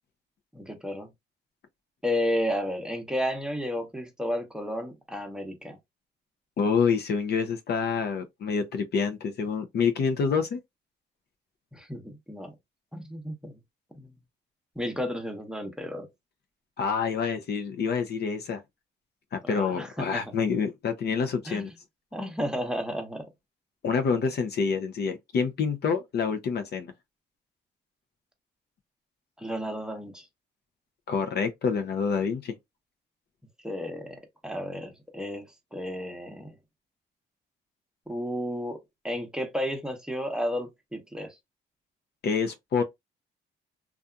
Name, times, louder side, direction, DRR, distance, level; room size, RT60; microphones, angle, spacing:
voice 1, 0.5-1.1 2.0-5.8 11.7-12.5 12.9-13.6 13.9-14.1 14.8-16.1 19.4-20.3 21.5-21.7 22.1-23.3 29.4-30.3 33.6-36.6 38.1-38.8 39.0-41.4, equal, 5° right, 0.8 m, -32 dB
voice 2, 6.6-10.6 16.8-18.6 19.3-21.7 23.8-26.9 31.1-32.6 42.2-42.8, left 5 dB, 55° left, 0.6 m, -27 dB
2.7 x 2.3 x 2.3 m
cardioid pair, 90°, 20 cm